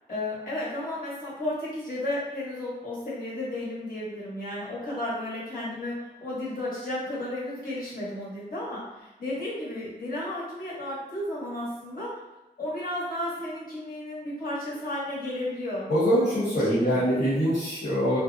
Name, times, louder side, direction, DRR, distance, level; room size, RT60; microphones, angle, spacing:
voice 1, 0.1-12.1 12.6-15.9 16.7-17.2, left 1 dB, 55° left, -8 dB, 1.2 m, -33 dB
voice 2, 15.9-18.2, equal, 85° left, -12 dB, 1.1 m, -23 dB
2.5 x 2.1 x 2.6 m, 0.99 s
wide cardioid pair, 50°, 18 cm